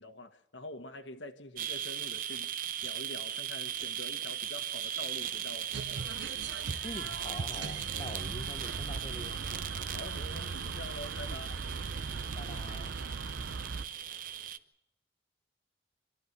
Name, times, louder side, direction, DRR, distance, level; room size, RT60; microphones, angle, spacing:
voice 1, 0.0-2.5 2.8-6.1 9.9-11.8, left 1 dB, 85° left, 1.5 m, -46 dB
sound 1, 1.6-14.6, right 10 dB, 45° right, 0.7 m, -38 dB
sound 2, 5.3-14.5, right 2 dB, 65° right, 2.4 m, -60 dB
sound 3, 5.7-13.8, right 4 dB, 85° right, 0.7 m, -39 dB
voice 2, 6.8-9.4 11.3-11.5 12.4-13.0, left 2 dB, 30° left, 0.7 m, -44 dB
26.5 x 12.5 x 8.0 m
head